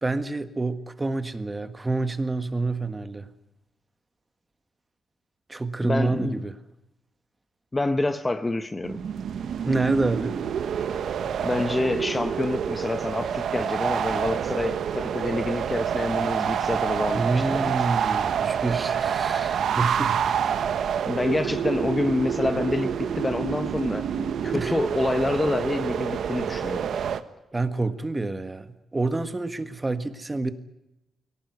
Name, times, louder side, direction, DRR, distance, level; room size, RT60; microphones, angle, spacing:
voice 1, 0.0-3.3 5.5-6.5 9.6-10.4 17.1-20.3 24.5-24.7 27.5-30.5, right 3 dB, 20° right, 1.6 m, -28 dB
voice 2, 5.8-6.4 7.7-9.0 11.4-17.7 21.0-24.1 24.4-26.9, left 2 dB, 20° left, 1.0 m, -27 dB
sound 1, 8.8-27.2, right 8 dB, 75° right, 1.3 m, -27 dB
22.5 x 18.5 x 9.6 m
cardioid pair, 115°, 0 cm